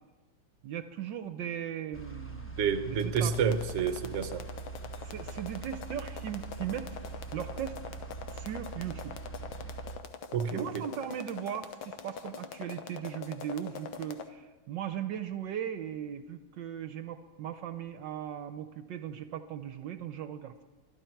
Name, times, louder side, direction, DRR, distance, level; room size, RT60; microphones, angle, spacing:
voice 1, 0.6-2.5 2.8-3.3 5.0-7.0 7.3-7.8 8.3-9.2 10.5-20.6, right 9 dB, 70° right, 10 dB, 1.3 m, -38 dB
sound 1, 1.9-10.0, right 4 dB, 15° left, 0.4 m, -43 dB
voice 2, 2.6-4.4 10.3-10.9, right 6 dB, 45° right, 8 dB, 1.0 m, -29 dB
sound 2, 3.0-14.3, left 6 dB, 75° left, 1.7 m, -43 dB
24.5 x 12.5 x 4.6 m, 1.2 s
omnidirectional pair, 2.2 m